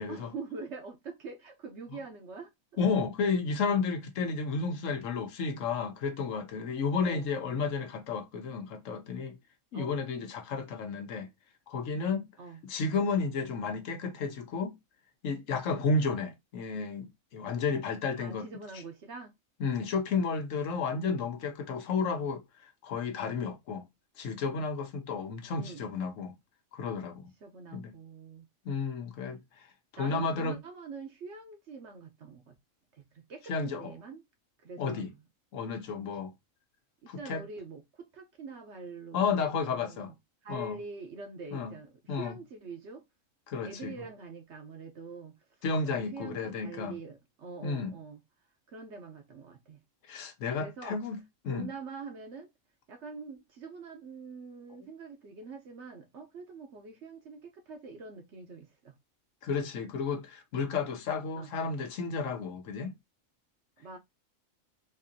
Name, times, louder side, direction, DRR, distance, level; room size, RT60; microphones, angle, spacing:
voice 1, 0.1-2.5 7.0-7.3 9.7-10.0 12.4-12.6 18.2-19.3 25.6-25.8 27.4-28.5 28.7-28.8 30.0-32.5 32.9-34.2 34.6-35.2 37.0-40.1 40.4-43.0 43.6-45.3 45.8-48.2 48.7-49.8 50.6-51.0 51.5-52.5 52.9-58.9 61.4-61.5 63.8-64.0, right 4 dB, 60° right, 1.1 m, -44 dB
voice 2, 2.8-9.4 9.7-11.3 11.7-12.3 12.6-14.8 15.2-18.5 19.6-22.4 22.8-23.9 24.2-26.3 26.7-27.3 27.7-27.9 28.6-29.4 29.9-30.6 33.5-33.9 34.8-35.1 35.5-36.3 37.1-37.4 39.1-40.1 40.5-40.8 41.5-41.7 42.1-42.3 43.5-43.9 45.6-47.0 47.6-47.9 50.1-51.7 59.4-62.9, left 4 dB, 70° left, 1.1 m, -32 dB
4.2 x 2.7 x 2.5 m
omnidirectional pair, 1.4 m